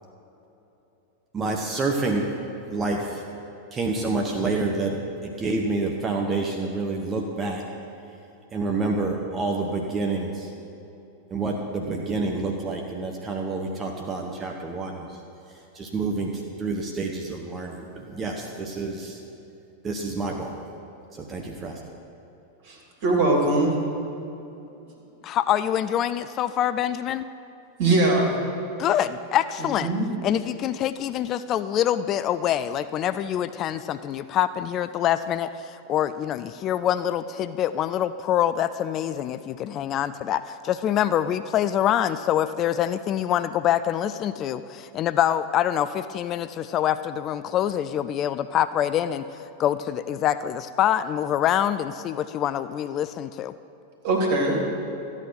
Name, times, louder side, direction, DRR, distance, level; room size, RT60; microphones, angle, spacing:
voice 1, 1.3-2.3 2.7-3.2 3.7-7.6 8.5-10.5 11.3-15.2 15.7-16.3 16.6-19.2 19.8-20.5 21.1-21.8, right 3 dB, 20° right, 1 dB, 1.1 m, -28 dB
voice 2, 23.0-23.7 27.8-28.3 29.6-30.1 54.0-54.6, right 2 dB, 50° right, 0 dB, 2.8 m, -21 dB
voice 3, 25.2-27.2 28.8-29.9 30.2-35.5 35.9-49.2 49.6-53.5, left 10 dB, 35° left, 13 dB, 0.3 m, -25 dB
14.0 x 9.0 x 5.8 m, 2.9 s
figure-of-eight pair, 90°, 0 cm